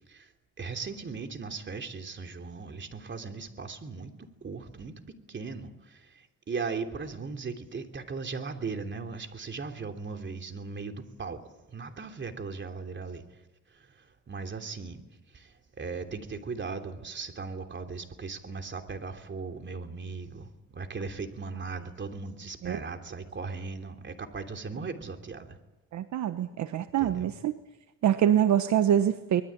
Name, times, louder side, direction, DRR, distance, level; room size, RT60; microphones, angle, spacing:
voice 1, 0.6-11.4 11.7-13.2 13.7-15.0 15.3-25.6 27.0-27.3, right 4 dB, 40° right, 5 dB, 3.2 m, -38 dB
voice 2, 25.9-27.5 28.0-29.4, right 10 dB, 70° right, 10 dB, 1.1 m, -25 dB
24.5 x 20.5 x 8.8 m, 1.0 s
cardioid pair, 90°, 30 cm